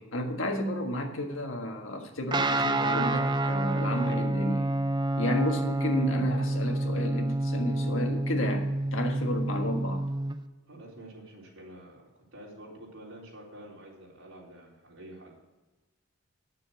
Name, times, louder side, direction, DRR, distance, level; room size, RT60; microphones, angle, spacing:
voice 1, 0.0-4.7 5.2-10.0, left 1 dB, 85° left, 4 dB, 1.6 m, -32 dB
Guitar, 2.3-10.4, right 2 dB, 25° right, 0.5 m, -28 dB
voice 2, 10.7-15.4, right 1 dB, 80° right, -4 dB, 3.9 m, -48 dB
9.7 x 6.9 x 6.2 m, 1.1 s
head